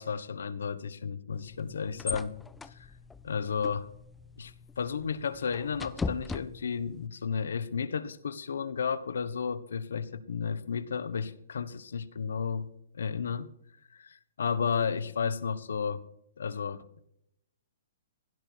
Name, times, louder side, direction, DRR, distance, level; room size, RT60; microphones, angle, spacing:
voice 1, 0.0-2.4 2.6-2.7 3.2-3.9 4.4-12.7 12.9-13.5 14.0-16.0 16.4-16.9, left 6 dB, 85° left, 1.3 m, -33 dB
sound 1, 1.3-7.1, left 4 dB, 5° left, 0.5 m, -40 dB
17.0 x 12.5 x 4.6 m
hypercardioid pair, 165°, 0 cm